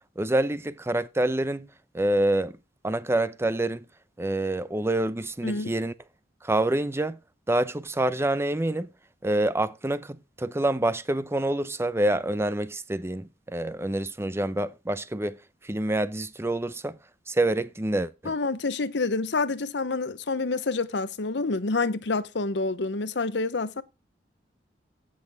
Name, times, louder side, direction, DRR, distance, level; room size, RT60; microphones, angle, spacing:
voice 1, 0.0-1.7 1.9-2.6 2.8-3.9 4.2-5.9 6.4-7.2 7.5-8.9 9.2-15.4 15.6-17.0 17.3-18.3, right 1 dB, 15° right, 0.6 m, -27 dB
voice 2, 18.2-23.8, left 3 dB, 70° left, 0.8 m, -28 dB
16.0 x 6.4 x 3.5 m
head